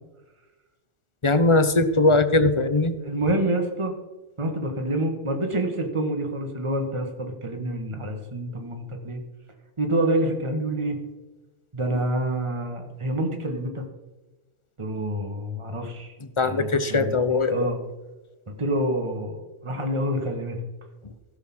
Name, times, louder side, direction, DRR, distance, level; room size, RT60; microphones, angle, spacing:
voice 1, 1.2-2.9 16.4-17.7, left 2 dB, 30° left, 11 dB, 0.7 m, -20 dB
voice 2, 3.0-3.9 4.4-9.2 9.8-11.0 11.7-13.8 14.8-16.1 16.4-17.2 17.5-17.8 18.5-20.6, right 1 dB, 25° right, 3 dB, 1.5 m, -27 dB
16.5 x 5.9 x 6.1 m, 1.2 s
omnidirectional pair, 1.3 m